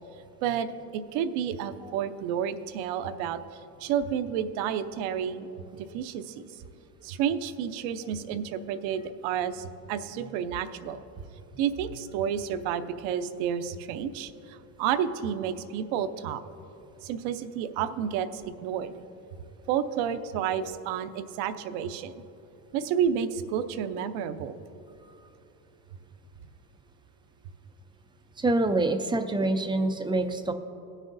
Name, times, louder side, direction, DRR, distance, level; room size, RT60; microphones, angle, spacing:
voice 1, 0.9-3.4 3.8-5.5 5.8-6.3 7.0-11.0 11.6-16.4 17.0-18.9 19.7-22.1 22.7-24.6, right 8 dB, 65° right, 10 dB, 0.7 m, -30 dB
voice 2, 28.4-30.5, right 2 dB, 10° right, 6 dB, 0.4 m, -26 dB
19.0 x 6.4 x 2.6 m, 2.9 s
supercardioid pair, 100°, 49 cm